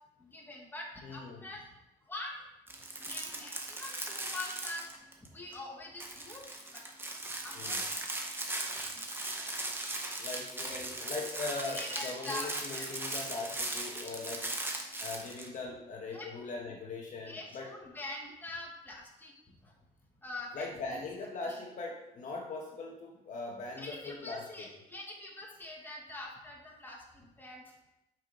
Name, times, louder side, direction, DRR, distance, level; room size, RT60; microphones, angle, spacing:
voice 1, 0.2-1.7 2.1-2.4 3.0-4.9 5.2-6.8 7.4-7.8 8.8-9.1 10.7-10.9 11.7-12.9 16.1-16.3 16.7-16.8 17.3-19.3 19.6-19.7 20.2-21.0 21.5-21.6 23.8-27.7, left 2 dB, 10° left, -2 dB, 2.4 m, -44 dB
voice 2, 1.0-1.5 7.5-7.9 10.2-14.5 15.0-17.7 20.5-24.7, left 3 dB, 50° left, 0 dB, 1.7 m, -40 dB
sound 1, 2.7-5.3 5.5-5.6 6.0-15.5, right 2 dB, 15° right, 1.5 m, -38 dB
8.0 x 6.1 x 5.5 m, 0.90 s
cardioid pair, 110°, 17 cm